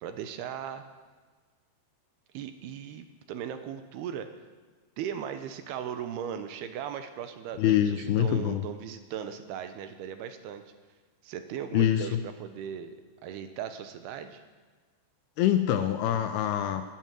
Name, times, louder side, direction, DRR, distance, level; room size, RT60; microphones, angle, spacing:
voice 1, 0.0-0.8 2.3-4.3 5.0-10.6 11.2-13.0 13.2-14.4, right 9 dB, 80° right, 9 dB, 2.7 m, -38 dB
voice 2, 7.6-8.6 11.7-12.2 15.4-16.8, left 11 dB, 80° left, 8 dB, 2.4 m, -25 dB
14.0 x 8.9 x 9.1 m, 1.4 s
omnidirectional pair, 5.0 m